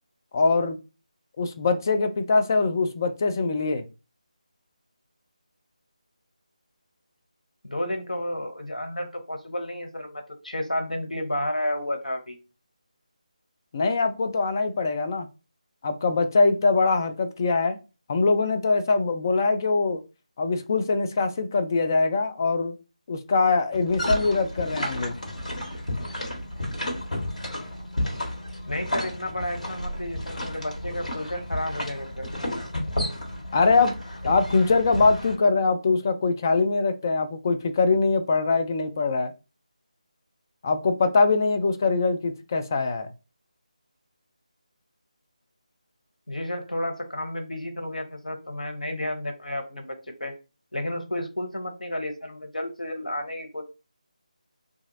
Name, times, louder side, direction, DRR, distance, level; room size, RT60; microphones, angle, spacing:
voice 1, 0.3-0.8 1.4-3.8 13.7-15.3 15.8-17.8 18.1-20.0 20.4-22.7 23.1-25.1 33.5-33.9 34.2-39.3 40.6-43.1, left 3 dB, 25° left, 7 dB, 0.3 m, -23 dB
voice 2, 7.6-12.4 28.7-32.3 46.3-49.9 50.2-50.3 50.7-53.6, left 1 dB, 90° left, 4 dB, 0.9 m, -31 dB
sound 1, 23.7-35.3, left 1 dB, 70° left, 1.2 m, -32 dB
2.9 x 2.4 x 2.6 m, 0.30 s
figure-of-eight pair, 160°, 4 cm